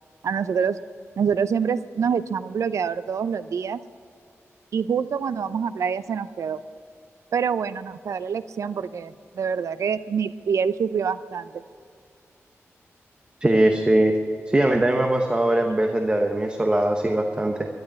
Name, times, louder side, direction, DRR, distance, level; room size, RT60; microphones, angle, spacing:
voice 1, 0.2-0.8 1.2-3.8 4.7-6.6 7.3-11.6, right 6 dB, 90° right, 14 dB, 0.6 m, -26 dB
voice 2, 13.4-14.1 14.5-17.7, right 1 dB, 20° right, 4 dB, 1.0 m, -21 dB
12.0 x 12.0 x 8.6 m, 2.3 s
wide cardioid pair, 125°, 5 cm